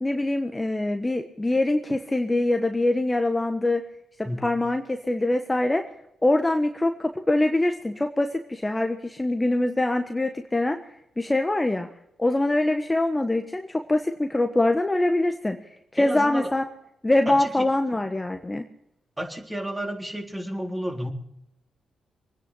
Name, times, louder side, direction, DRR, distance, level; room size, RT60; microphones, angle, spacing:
voice 1, 0.0-3.8 4.2-5.8 6.2-10.8 11.2-11.9 12.2-15.6 15.9-16.6 17.0-18.6, left 2 dB, 20° left, 5 dB, 1.4 m, -24 dB
voice 2, 4.2-4.6 16.0-16.5 17.3-17.7 19.2-21.1, equal, 10° right, 1 dB, 3.8 m, -31 dB
23.5 x 10.0 x 5.7 m, 0.80 s
hypercardioid pair, 40°, 0 cm